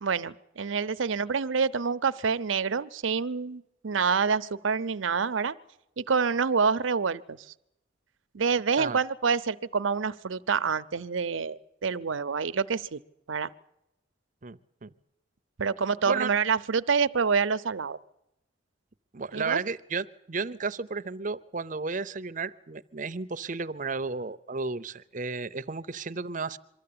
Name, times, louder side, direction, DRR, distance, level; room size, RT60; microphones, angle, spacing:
voice 1, 0.0-5.5 6.0-7.5 8.3-13.0 13.3-13.5 15.6-18.0 19.3-19.6, right 5 dB, 85° right, 13 dB, 0.7 m, -27 dB
voice 2, 14.4-14.9 16.1-16.3 19.1-26.6, right 4 dB, 40° right, 12 dB, 0.7 m, -33 dB
23.5 x 13.5 x 8.6 m, 0.84 s
head